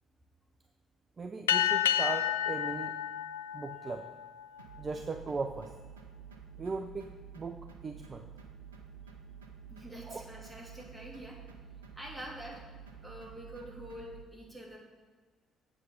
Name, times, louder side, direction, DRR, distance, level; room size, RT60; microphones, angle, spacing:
voice 1, 1.2-2.9 3.5-4.1 4.8-5.7 6.6-7.1 7.3-8.3 10.1-10.2, right 4 dB, 35° right, 7 dB, 0.5 m, -38 dB
sound 1, 1.5-4.4, left 10 dB, 80° left, 0.3 m, -30 dB
sound 2, 4.6-14.3, right 7 dB, 80° right, 0.7 m, -50 dB
voice 2, 9.7-11.4 12.0-12.6 13.0-14.8, right 1 dB, 15° right, -2 dB, 2.7 m, -46 dB
7.7 x 7.7 x 5.6 m, 1.4 s
figure-of-eight pair, 45°, 0 cm